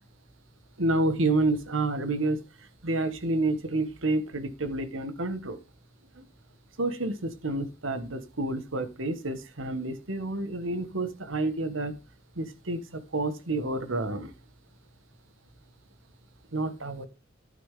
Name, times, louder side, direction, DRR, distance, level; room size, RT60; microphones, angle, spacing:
voice 1, 0.8-2.4 2.8-5.6 6.1-6.2 6.8-12.0 12.3-14.3 16.5-17.1, right 2 dB, 85° right, 10 dB, 1.6 m, -29 dB
11.5 x 9.2 x 3.7 m, 0.29 s
head